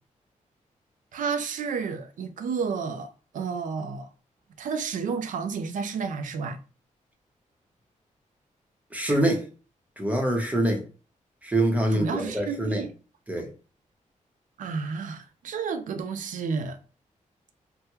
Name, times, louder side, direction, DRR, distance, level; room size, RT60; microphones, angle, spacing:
voice 1, 1.1-4.1 4.6-6.6 11.9-12.9 14.6-16.8, right 5 dB, 80° right, 0.5 m, -31 dB
voice 2, 8.9-9.4 10.0-10.8 11.4-12.8 13.3-13.5, right 1 dB, 10° right, 0.8 m, -25 dB
3.5 x 2.2 x 2.9 m
wide cardioid pair, 125°, 13 cm